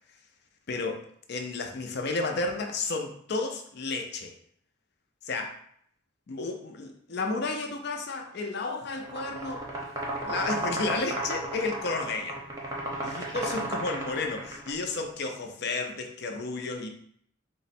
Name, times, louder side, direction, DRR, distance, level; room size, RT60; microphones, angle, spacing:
voice 1, 0.7-1.0 1.3-4.3 5.2-5.5 6.3-9.7 10.2-12.4 13.0-16.9, left 3 dB, 55° left, 4 dB, 0.5 m, -32 dB
sound 1, 9.0-14.7, right 1 dB, 15° right, 0.7 m, -33 dB
3.8 x 2.1 x 4.2 m, 0.66 s
head